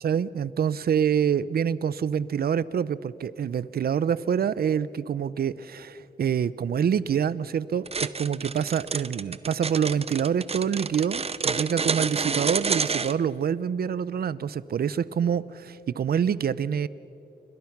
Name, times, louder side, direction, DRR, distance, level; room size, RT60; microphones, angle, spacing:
voice 1, 0.0-16.9, right 8 dB, 70° right, 18 dB, 0.6 m, -26 dB
sound 1, 7.9-13.1, right 5 dB, 40° right, 0.8 m, -28 dB
29.5 x 22.5 x 6.0 m, 2.8 s
cardioid pair, 85°, 16 cm